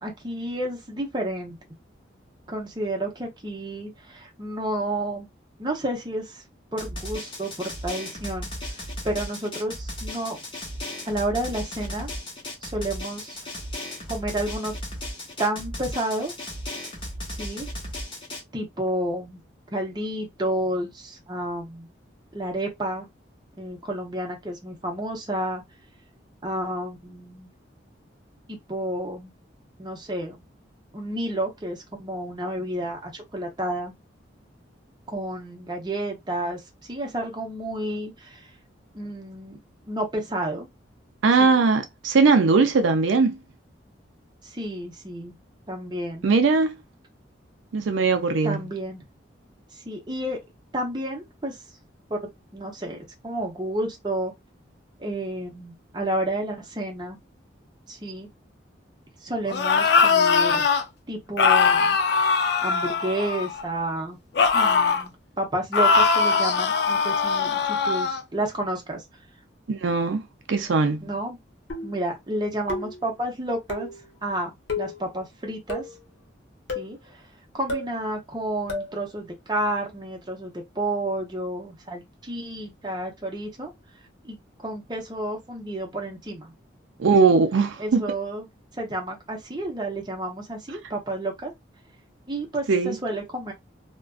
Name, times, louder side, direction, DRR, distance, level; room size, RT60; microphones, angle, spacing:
voice 1, 0.0-1.6 2.5-5.3 5.6-6.4 6.7-10.4 11.1-12.1 12.6-13.4 14.1-14.7 15.4-16.3 17.3-17.7 18.5-19.4 19.7-21.9 22.3-23.1 23.6-25.6 26.4-27.5 28.5-29.3 29.8-30.4 30.9-33.9 35.1-38.5 38.9-39.6 39.9-40.7 41.4-41.6 44.4-45.4 45.7-46.2 48.4-49.0 49.7-50.4 50.7-51.6 52.1-54.3 55.0-57.2 57.9-58.3 59.2-60.7 61.1-64.2 64.5-69.0 71.0-71.4 71.8-73.9 74.2-74.5 74.8-75.9 76.7-77.3 77.5-83.7 84.2-86.5 87.2-87.4 87.8-88.5 88.8-91.5 92.3-93.5, right 1 dB, 25° right, 0.7 m, -31 dB
Drum, 6.8-18.4, left 1 dB, 25° left, 0.9 m, -35 dB
voice 2, 41.2-43.4 46.2-46.8 47.7-48.6 69.7-70.2 70.5-71.1 87.0-88.0 92.7-93.0, right 4 dB, 80° right, 0.4 m, -20 dB
sound 1, 59.5-60.8 61.4-63.6 64.4-65.1 65.7-68.2, left 5 dB, 60° left, 0.4 m, -21 dB
sound 2, 71.7-72.1 72.7-73.1 73.7-74.0 74.7-75.0 75.7-76.0 76.7-77.0 77.7-77.9 78.7-79.0, left 2 dB, 75° left, 0.8 m, -32 dB
2.4 x 2.2 x 2.3 m
head